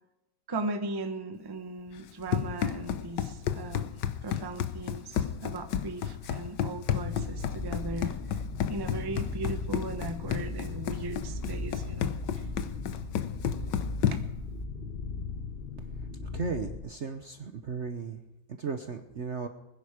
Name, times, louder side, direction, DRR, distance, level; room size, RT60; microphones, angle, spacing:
voice 1, 0.5-3.9 4.2-8.4 8.7-12.4 14.1-14.2, right 2 dB, 15° right, 7 dB, 0.8 m, -38 dB
Run, 2.0-14.4, left 9 dB, 70° left, 1.4 m, -32 dB
sound 1, 7.0-16.8, left 3 dB, 30° left, 1.4 m, -37 dB
voice 2, 16.3-18.2 18.6-19.5, right 5 dB, 50° right, 7 dB, 1.0 m, -35 dB
20.5 x 10.5 x 5.0 m, 0.99 s
omnidirectional pair, 2.1 m